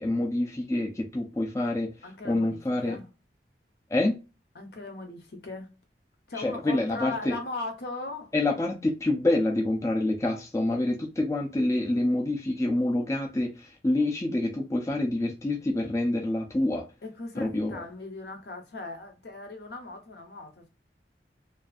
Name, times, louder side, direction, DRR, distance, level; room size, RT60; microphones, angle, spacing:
voice 1, 0.0-1.9 2.2-3.0 3.9-4.2 6.4-7.4 8.3-16.8 17.4-17.8, left 1 dB, 15° left, 0.4 m, -27 dB
voice 2, 2.0-3.1 4.5-5.7 6.3-8.3 17.0-20.7, left 3 dB, 65° left, 0.6 m, -38 dB
2.5 x 2.4 x 2.3 m
head